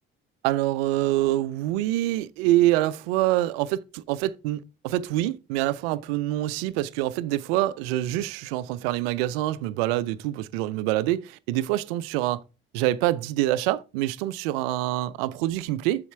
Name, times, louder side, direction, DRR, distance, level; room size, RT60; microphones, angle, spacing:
voice 1, 0.4-12.4 12.7-16.1, right 15 dB, 80° right, 0.5 m, -26 dB
7.1 x 4.9 x 4.5 m
hypercardioid pair, 50°, 30 cm